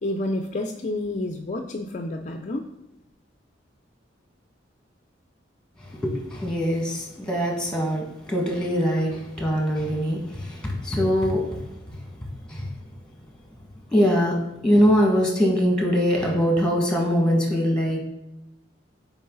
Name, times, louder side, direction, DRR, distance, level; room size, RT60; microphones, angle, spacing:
voice 1, 0.0-2.7, left 1 dB, 40° left, 4 dB, 0.5 m, -29 dB
voice 2, 6.0-11.5 12.5-12.7 13.9-18.0, equal, 5° left, 0 dB, 1.7 m, -22 dB
9.2 x 4.7 x 3.9 m, 0.93 s
head